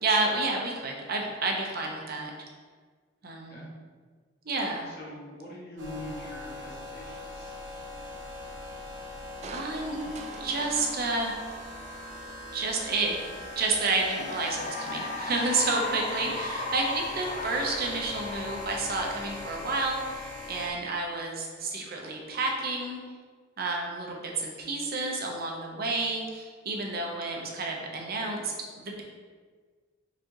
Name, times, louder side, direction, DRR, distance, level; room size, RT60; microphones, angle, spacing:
voice 1, 0.0-2.3 3.2-3.6 4.4-4.9 9.5-10.0 10.4-11.4 12.5-13.2 13.6-23.0 23.6-29.0, right 3 dB, 55° right, 0 dB, 0.7 m, -30 dB
voice 2, 4.8-7.5 16.1-16.4 26.8-26.9, left 1 dB, 55° left, -4 dB, 1.2 m, -43 dB
sound 1, 5.8-20.7, left 2 dB, 80° right, 1.1 m, -41 dB
Crushing, 9.4-12.8 13.2-13.3, right 3 dB, 35° right, 0.3 m, -45 dB
Cheering / Applause, 13.6-20.3, left 2 dB, 40° left, 0.4 m, -37 dB
4.8 x 3.7 x 2.9 m, 1.5 s
head